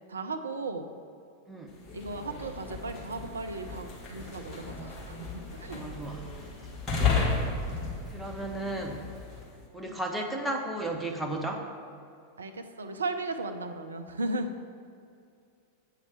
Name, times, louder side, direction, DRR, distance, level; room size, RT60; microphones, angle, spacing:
voice 1, 0.1-0.9 1.9-5.8 9.8-9.9 12.4-14.5, right 2 dB, 75° right, 6 dB, 0.6 m, -36 dB
sound 1, 1.7-9.5, left 4 dB, 25° left, 1.9 m, -34 dB
voice 2, 5.7-6.2 8.1-9.0 9.7-11.7, right 1 dB, 5° right, 0 dB, 1.0 m, -34 dB
7.9 x 5.7 x 6.1 m, 2.4 s
figure-of-eight pair, 90°, 0 cm